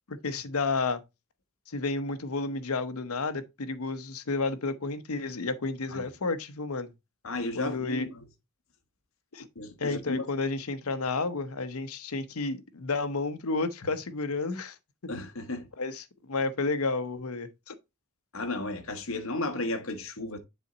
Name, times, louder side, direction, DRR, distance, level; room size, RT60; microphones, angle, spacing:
voice 1, 0.1-1.0 1.7-6.9 7.5-8.1 9.3-9.5 9.8-14.8 15.8-17.8, left 3 dB, 85° left, 0.9 m, -31 dB
voice 2, 7.2-8.2 9.5-10.2 15.1-15.7 18.3-20.4, left 2 dB, 70° left, 1.2 m, -33 dB
7.1 x 4.2 x 3.9 m
head